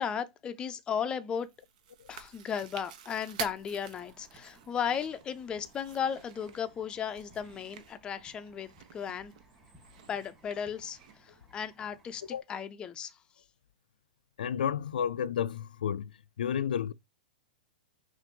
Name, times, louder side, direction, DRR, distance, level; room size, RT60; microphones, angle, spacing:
voice 1, 0.0-1.5 2.1-9.3 10.1-12.2 12.5-13.1, left 7 dB, 20° left, 0.5 m, -35 dB
Chewing mastication, 1.4-11.1, right 9 dB, 60° right, 0.7 m, -48 dB
sound 1, 3.1-12.4, right 1 dB, 15° right, 1.8 m, -61 dB
voice 2, 14.4-16.1 16.4-16.9, left 8 dB, 85° left, 0.3 m, -31 dB
5.8 x 2.6 x 2.9 m
hypercardioid pair, 135°, 5 cm